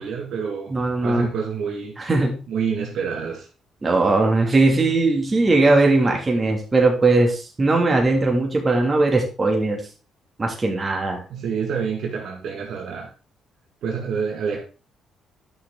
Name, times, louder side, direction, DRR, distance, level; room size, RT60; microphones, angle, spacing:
voice 1, 0.0-0.7 1.0-2.0 2.5-3.5 11.3-13.1 13.8-14.6, right 6 dB, 70° right, 2.2 m, -27 dB
voice 2, 0.7-1.3 2.0-2.4 3.8-9.8 10.4-11.2, right 2 dB, 30° right, 3.1 m, -19 dB
10.5 x 6.2 x 4.0 m
cardioid pair, 90°, 0 cm